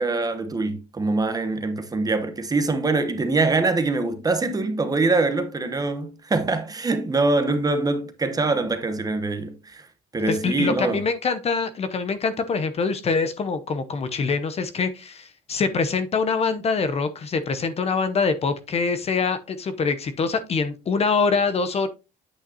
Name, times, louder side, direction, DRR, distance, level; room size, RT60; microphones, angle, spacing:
voice 1, 0.0-9.9 10.1-11.0, right 3 dB, 20° right, 0.9 m, -24 dB
voice 2, 10.3-21.9, left 4 dB, 40° left, 0.7 m, -24 dB
8.5 x 5.7 x 2.8 m
cardioid pair, 110°, 17 cm